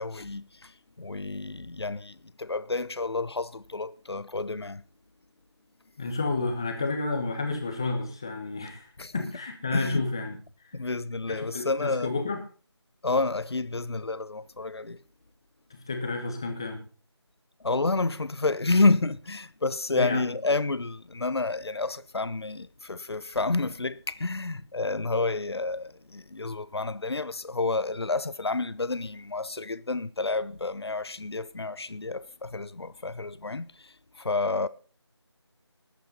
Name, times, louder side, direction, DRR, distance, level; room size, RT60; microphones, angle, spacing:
voice 1, 0.0-4.8 9.0-9.2 9.7-10.1 10.7-12.1 13.0-15.0 17.6-34.7, left 3 dB, 60° left, 0.8 m, -29 dB
voice 2, 6.0-10.4 11.3-12.4 15.7-16.8 19.9-20.3, left 3 dB, 10° left, 0.9 m, -30 dB
20.0 x 8.6 x 3.9 m
figure-of-eight pair, 170°, 15 cm